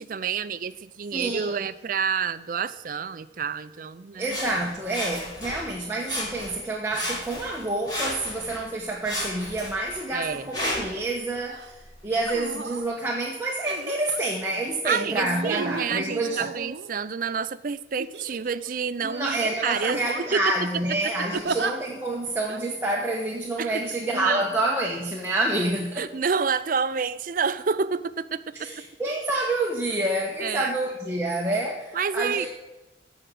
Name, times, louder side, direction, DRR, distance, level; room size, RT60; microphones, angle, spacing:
voice 1, 0.0-4.4 10.1-10.5 14.8-20.0 20.3-20.5 21.0-21.1 23.6-23.7 24.1-24.5 26.0-28.4 30.4-30.7 31.9-32.5, right 6 dB, 50° right, 14 dB, 0.5 m, -28 dB
voice 2, 1.1-1.7 4.1-11.8 12.0-16.5 19.0-26.1 28.5-32.5, right 2 dB, 15° right, -2 dB, 1.1 m, -28 dB
Sawing, 4.2-5.7 6.0-6.6 6.9-8.6 9.0-11.0 11.7-11.8, left 1 dB, 25° left, 3.2 m, -33 dB
sound 1, 11.5-11.7 12.2-12.8 13.6-14.2 15.2-17.2 18.0-18.7 19.1-19.3 19.8-20.4 21.3-21.7 22.5-22.6, right 3 dB, 65° right, 0.8 m, -34 dB
14.5 x 5.0 x 7.7 m, 1.0 s
head